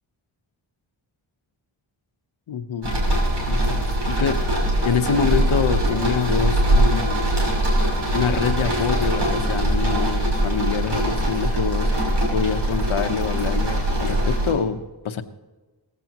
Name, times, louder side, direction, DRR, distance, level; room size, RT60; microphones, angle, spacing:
voice 1, 2.5-3.0 3.5-3.8 4.1-4.6 4.8-7.3 8.1-11.9 12.3-15.2, left 7 dB, 80° left, 8 dB, 1.1 m, -25 dB
sound 1, 2.8-14.5, right 1 dB, 55° right, 5.8 m, -22 dB
19.0 x 15.5 x 3.0 m, 1.2 s
wide cardioid pair, 165°, 47 cm